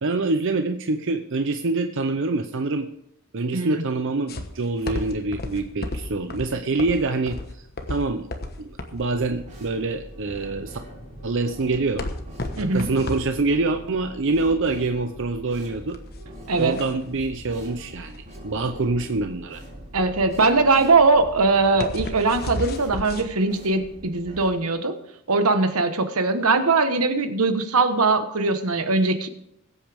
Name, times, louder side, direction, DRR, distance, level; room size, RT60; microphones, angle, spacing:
voice 1, 0.0-2.9 3.3-8.3 8.6-10.8 11.2-12.1 12.6-16.0 16.6-19.6, right 3 dB, 60° right, 7 dB, 0.7 m, -25 dB
voice 2, 3.5-3.8 12.6-12.9 16.5-16.8 19.9-24.9 25.3-29.3, right 3 dB, 80° right, 9 dB, 1.2 m, -21 dB
sound 1, 4.3-23.2, left 1 dB, 45° left, 1.2 m, -34 dB
sound 2, 9.0-24.5, equal, 35° right, 3.9 m, -42 dB
21.0 x 8.4 x 3.5 m, 0.79 s
head